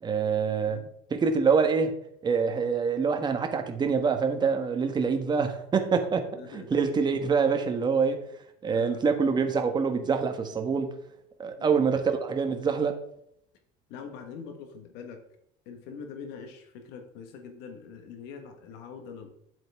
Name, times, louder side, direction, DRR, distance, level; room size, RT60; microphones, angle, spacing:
voice 1, 0.0-0.8 1.1-1.9 2.2-8.2 8.6-11.0 11.4-13.0, right 5 dB, 25° right, 6 dB, 1.3 m, -25 dB
voice 2, 6.4-6.8 8.7-9.0 11.5-11.9 13.9-15.2 15.6-19.3, left 6 dB, 70° left, 5 dB, 1.5 m, -43 dB
9.7 x 7.9 x 3.6 m, 0.73 s
cardioid pair, 125°, 17 cm